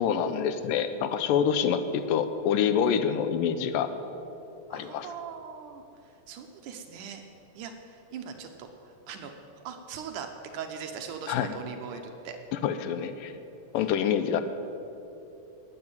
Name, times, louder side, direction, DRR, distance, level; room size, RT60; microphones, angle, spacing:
voice 1, 0.0-3.9 4.7-5.1 11.3-11.6 12.5-13.3 13.7-14.4, left 8 dB, 80° left, 10 dB, 2.2 m, -26 dB
voice 2, 4.7-5.8 6.3-7.2 7.6-9.3 9.6-10.3 10.5-12.4 13.8-13.9, right 7 dB, 70° right, 5 dB, 2.1 m, -40 dB
12.0 x 9.8 x 8.9 m, 2.9 s
omnidirectional pair, 4.0 m